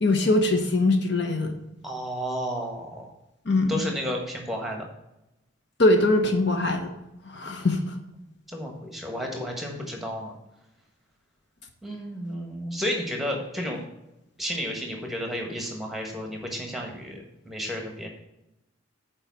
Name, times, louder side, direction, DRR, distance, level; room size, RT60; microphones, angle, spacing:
voice 1, 0.0-1.6 3.5-3.8 5.8-6.9 7.3-7.9, left 2 dB, 55° left, 5 dB, 0.9 m, -22 dB
voice 2, 1.8-3.1 3.7-4.8 8.5-10.3 11.8-13.8 14.4-18.1, equal, ahead, 1 dB, 1.4 m, -32 dB
7.1 x 4.8 x 6.9 m, 0.90 s
head